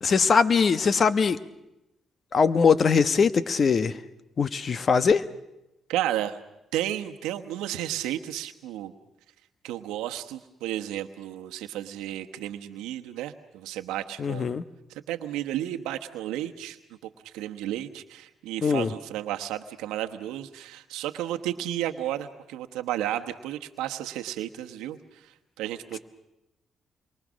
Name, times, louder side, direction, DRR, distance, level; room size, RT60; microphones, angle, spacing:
voice 1, 0.0-1.4 2.3-3.9 4.4-5.2 14.2-14.6 18.6-18.9, left 5 dB, 50° left, 13 dB, 1.1 m, -21 dB
voice 2, 5.9-6.4 6.7-8.9 9.6-14.6 15.1-16.8 17.3-25.0 25.6-26.0, right 12 dB, 85° right, 6 dB, 1.1 m, -32 dB
27.5 x 23.5 x 6.3 m, 0.91 s
supercardioid pair, 55°, 0 cm